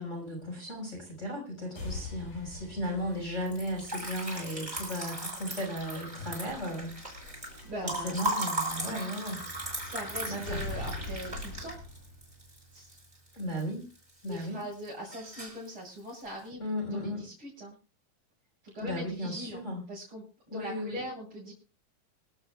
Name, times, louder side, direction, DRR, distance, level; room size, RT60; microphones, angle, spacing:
voice 1, 0.0-6.9 7.2-7.4 8.0-9.4 10.3-10.6 13.3-13.8 14.2-14.6 16.6-17.3 18.8-19.8 20.5-21.0, equal, 20° left, -1 dB, 5.7 m, -35 dB
sound 1, 1.8-13.7, left 2 dB, 75° left, 9.3 m, -45 dB
Liquid, 3.4-13.6 13.9-14.6 14.9-15.7, right 1 dB, 10° right, 6.3 m, -37 dB
voice 2, 7.6-8.2 8.8-9.1 9.8-11.8 12.7-13.0 14.3-16.6 16.9-17.7 18.6-21.5, equal, 35° right, -7 dB, 8.2 m, -41 dB
27.5 x 12.5 x 2.4 m, 0.35 s
omnidirectional pair, 4.1 m